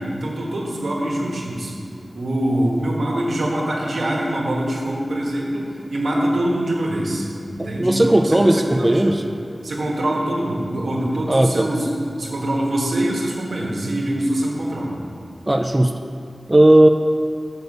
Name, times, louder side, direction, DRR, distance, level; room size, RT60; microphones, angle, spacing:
voice 1, 0.0-1.7 2.1-9.2 9.6-11.9 12.2-15.0, right 1 dB, 85° right, -3 dB, 1.4 m, -24 dB
voice 2, 7.8-9.2 11.3-11.7 15.5-15.9 16.5-16.9, right 1 dB, 20° right, 5 dB, 0.4 m, -15 dB
6.6 x 6.4 x 5.3 m, 2.5 s
wide cardioid pair, 75°, 0 cm